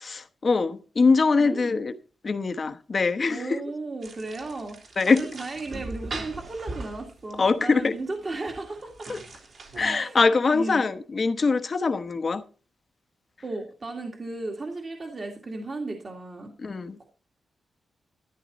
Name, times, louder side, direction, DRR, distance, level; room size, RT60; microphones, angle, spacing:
voice 1, 0.0-1.9 2.2-3.6 5.0-5.3 7.4-7.9 9.1-9.2 9.8-12.4 16.6-17.0, left 4 dB, 40° left, 1.0 m, -23 dB
voice 2, 1.4-1.8 3.3-4.8 5.1-9.1 9.8-10.2 10.5-10.9 13.4-16.5 17.0-17.1, right 2 dB, 35° right, 2.0 m, -35 dB
sound 1, 4.0-10.0, right 3 dB, 60° right, 4.0 m, -40 dB
13.0 x 11.0 x 4.2 m
wide cardioid pair, 115°, 0 cm